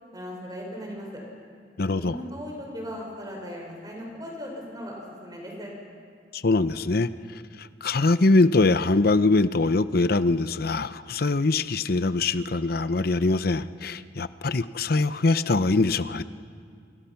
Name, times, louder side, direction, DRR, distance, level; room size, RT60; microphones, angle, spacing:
voice 1, 0.1-1.2 1.8-5.7, equal, 25° right, -1 dB, 5.8 m, -38 dB
voice 2, 1.8-2.2 6.3-7.1 7.6-16.2, left 3 dB, 60° left, 13 dB, 0.8 m, -23 dB
28.5 x 28.0 x 5.9 m, 2.4 s
head